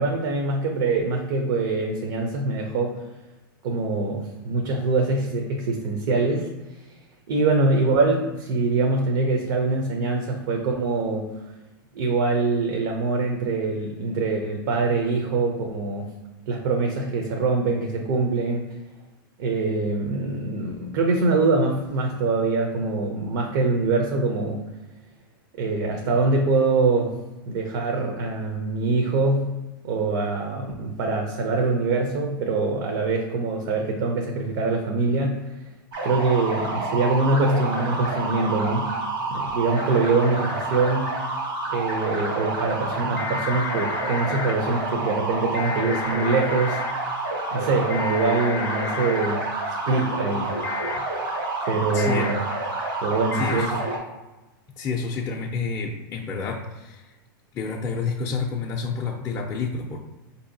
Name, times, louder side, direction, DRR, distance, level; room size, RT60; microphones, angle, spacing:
voice 1, 0.0-3.0 3.6-6.5 7.3-11.3 11.9-16.1 16.5-18.7 19.4-24.6 25.6-27.1 27.5-29.5 29.8-35.4 36.0-38.9 39.3-41.1 41.7-46.8 47.5-49.4 49.8-50.6 51.7-52.4 53.0-53.7, right 3 dB, 65° right, 2 dB, 0.6 m, -24 dB
sound 1, 35.9-54.0, right 2 dB, 85° right, 1.4 m, -29 dB
sound 2, 43.2-44.5 45.5-46.9 47.9-49.3 50.6-51.0 52.0-52.3 53.3-53.7, left 6 dB, 80° left, 0.5 m, -33 dB
voice 2, 51.9-52.2 53.3-53.7 54.8-57.1 57.5-60.0, left 5 dB, 25° left, -1 dB, 0.4 m, -29 dB
4.3 x 2.7 x 2.6 m, 1.1 s
hypercardioid pair, 125°, 12 cm